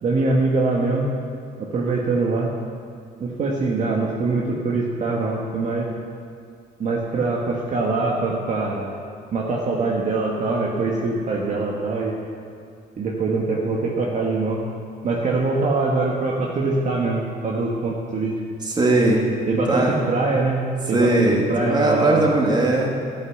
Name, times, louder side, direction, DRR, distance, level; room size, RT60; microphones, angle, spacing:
voice 1, 0.0-1.1 1.6-2.5 3.2-5.9 6.8-8.9 9.3-12.2 13.0-14.6 15.0-18.3 19.5-20.6 20.9-22.3, right 3 dB, 45° right, -2 dB, 1.7 m, -23 dB
voice 2, 18.6-19.2 19.7-20.0 20.9-22.9, right 2 dB, 25° right, -1 dB, 2.6 m, -19 dB
12.0 x 11.0 x 6.5 m, 2.3 s
cardioid pair, 110°, 17 cm